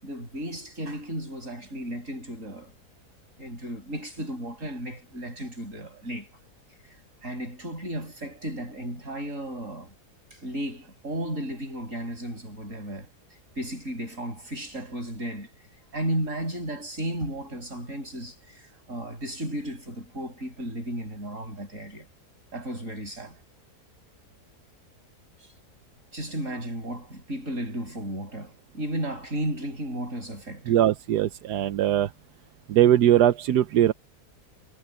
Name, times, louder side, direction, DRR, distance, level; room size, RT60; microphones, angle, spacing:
voice 1, 0.0-2.8 3.4-6.3 7.2-10.0 10.3-13.1 13.6-15.5 15.9-22.1 22.5-23.4 25.4-25.5 26.1-30.9, right 1 dB, 50° right, 7.7 m, -34 dB
voice 2, 30.7-32.1 32.7-33.9, right 11 dB, 80° right, 1.3 m, -20 dB
omnidirectional pair, 1.7 m